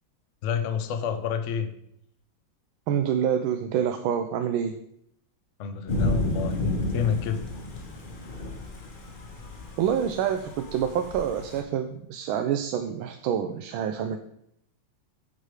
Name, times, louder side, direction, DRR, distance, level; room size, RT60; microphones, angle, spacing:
voice 1, 0.4-1.7 5.6-7.5, left 7 dB, 75° left, 8 dB, 0.6 m, -29 dB
voice 2, 2.9-4.8 9.8-14.2, right 9 dB, 85° right, 7 dB, 1.4 m, -27 dB
Thunder / Rain, 5.9-11.6, left 2 dB, 40° left, 0.7 m, -31 dB
7.7 x 4.8 x 4.8 m, 0.73 s
omnidirectional pair, 2.2 m